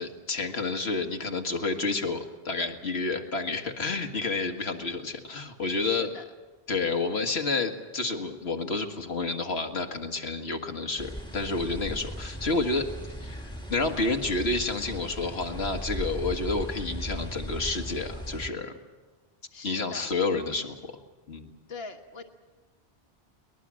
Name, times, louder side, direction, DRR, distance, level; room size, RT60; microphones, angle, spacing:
voice 1, 0.0-6.1 6.7-12.9 13.2-18.7 19.6-20.9 21.3-21.5, left 3 dB, 85° left, 4 dB, 2.0 m, -30 dB
voice 2, 5.8-6.2 19.5-20.1 21.7-22.2, left 4 dB, 70° left, 5 dB, 1.6 m, -42 dB
sound 1, 11.0-18.5, equal, 5° left, 1.4 m, -37 dB
23.0 x 20.5 x 7.6 m, 1.3 s
omnidirectional pair, 1.0 m